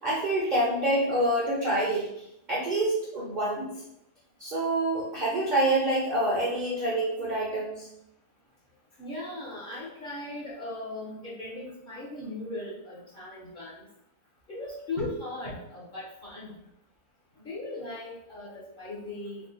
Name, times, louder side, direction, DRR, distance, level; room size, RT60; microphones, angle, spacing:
voice 1, 0.0-2.1 2.5-3.7 4.4-7.9, right 1 dB, 50° right, -6 dB, 0.5 m, -26 dB
voice 2, 9.0-13.8 14.5-16.6 17.4-19.4, left 2 dB, 50° left, -5 dB, 0.7 m, -38 dB
3.6 x 2.2 x 3.7 m, 0.77 s
omnidirectional pair, 1.6 m